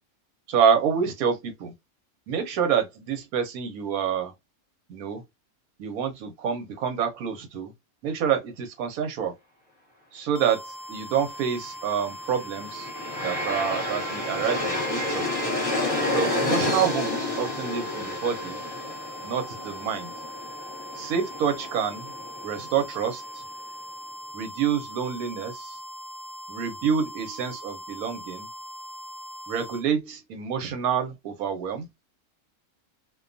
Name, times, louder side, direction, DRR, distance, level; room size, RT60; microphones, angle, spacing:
voice 1, 0.5-1.7 2.3-4.3 4.9-5.2 5.8-7.7 8.0-9.3 10.1-12.9 13.2-15.3 16.1-18.6 19.2-20.1 20.9-22.1 22.4-23.2 24.3-25.8 26.5-28.5 29.5-31.9, right 7 dB, 90° right, 1.2 m, -27 dB
sound 1, 10.4-29.8, equal, 70° left, 0.9 m, -41 dB
Aircraft, 12.1-23.2, left 2 dB, 25° left, 1.0 m, -30 dB
2.5 x 2.2 x 2.4 m
omnidirectional pair, 1.5 m